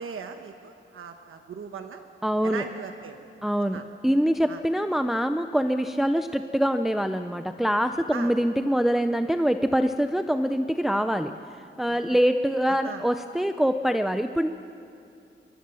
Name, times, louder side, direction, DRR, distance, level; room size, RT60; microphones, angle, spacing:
voice 1, 0.0-2.0 2.4-3.8 4.5-4.6 8.1-8.3 11.9-12.0 12.7-13.0, right 6 dB, 85° right, 6 dB, 1.2 m, -39 dB
voice 2, 2.2-2.7 3.4-11.3 11.8-14.5, equal, ahead, 8 dB, 0.5 m, -24 dB
24.5 x 22.5 x 6.9 m, 2.7 s
wide cardioid pair, 170°, 21 cm